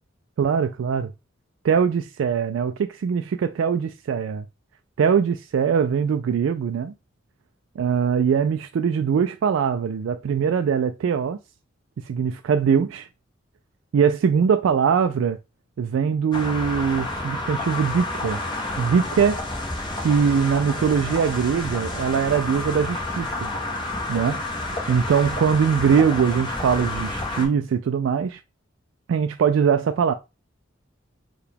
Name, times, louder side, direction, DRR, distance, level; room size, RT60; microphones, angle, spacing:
voice 1, 0.4-1.1 1.6-4.5 5.0-6.9 7.8-11.4 12.0-13.1 13.9-15.4 15.8-18.4 18.8-19.4 20.0-23.5 24.1-24.4 24.7-28.4 29.1-30.1, right 7 dB, 75° right, 0.3 m, -22 dB
sound 1, 16.3-27.5, left 2 dB, 25° left, 0.9 m, -30 dB
4.7 x 2.3 x 3.3 m
head